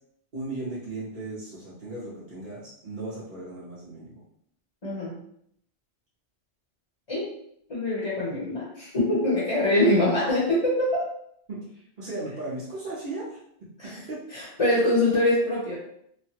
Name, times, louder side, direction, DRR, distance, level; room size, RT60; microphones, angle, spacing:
voice 1, 0.3-4.2 11.5-13.4 14.1-14.2, right 2 dB, 45° right, -9 dB, 1.0 m, -36 dB
voice 2, 4.8-5.2 7.1-7.3 7.7-11.0 13.8-14.0 14.3-15.8, left 1 dB, 30° left, -7 dB, 1.1 m, -24 dB
3.1 x 2.3 x 2.9 m, 0.68 s
omnidirectional pair, 1.2 m